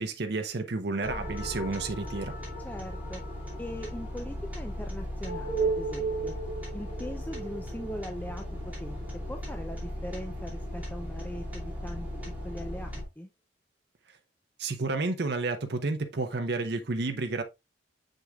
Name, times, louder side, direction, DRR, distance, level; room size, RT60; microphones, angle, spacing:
voice 1, 0.0-2.3 14.6-17.4, right 3 dB, 60° right, 0.8 m, -31 dB
sound 1, 1.0-9.8, right 4 dB, 35° left, 2.4 m, -37 dB
sound 2, 1.0-13.0, left 1 dB, 10° right, 2.7 m, -38 dB
voice 2, 2.6-3.2 3.6-6.4 6.7-12.1 12.4-13.3, left 1 dB, 10° left, 0.5 m, -40 dB
6.5 x 6.3 x 2.3 m
head